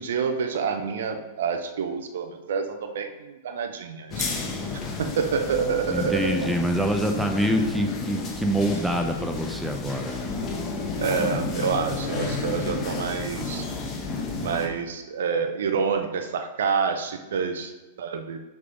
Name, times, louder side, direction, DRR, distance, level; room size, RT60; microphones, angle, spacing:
voice 1, 0.0-4.3 5.0-6.5 11.0-13.7 14.4-17.7 18.0-18.4, right 6 dB, 65° right, 6 dB, 0.7 m, -28 dB
sound 1, 4.1-14.7, left 3 dB, 30° left, 1.1 m, -31 dB
voice 2, 5.9-10.4, equal, ahead, 3 dB, 0.7 m, -25 dB
6.7 x 3.5 x 5.2 m, 1.1 s
figure-of-eight pair, 100°, 0 cm